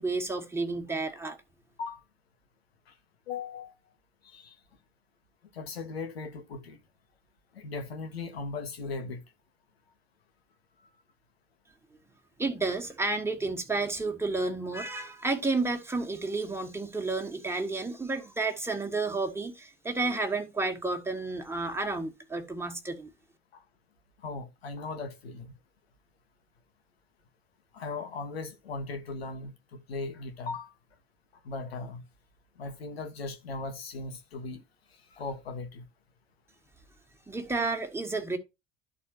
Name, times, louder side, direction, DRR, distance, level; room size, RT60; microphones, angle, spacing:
voice 1, 0.0-1.4 12.4-23.1 37.3-38.4, right 3 dB, 10° right, 1.5 m, -31 dB
voice 2, 3.3-3.7 4.2-4.5 5.5-6.8 7.5-9.2 23.5-23.6 24.2-25.5 27.7-30.7 31.4-32.0 32.6-34.6 35.1-35.8, left 3 dB, 75° left, 1.3 m, -38 dB
12.5 x 4.2 x 2.9 m
figure-of-eight pair, 60°, 31 cm